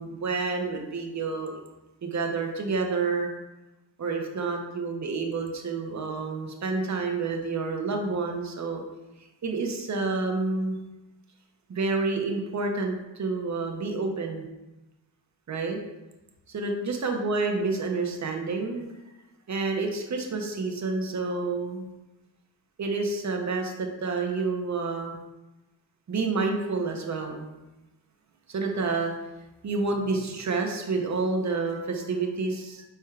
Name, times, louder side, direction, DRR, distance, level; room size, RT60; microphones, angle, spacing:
voice 1, 0.0-1.6 2.0-3.3 4.0-8.8 9.4-10.8 11.7-14.5 15.5-15.8 16.5-18.8 19.5-21.9 22.8-25.2 26.1-27.4 28.5-29.1 29.6-32.8, right 3 dB, 40° right, 3 dB, 0.8 m, -29 dB
4.5 x 4.4 x 2.4 m, 1.0 s
cardioid pair, 65°, 46 cm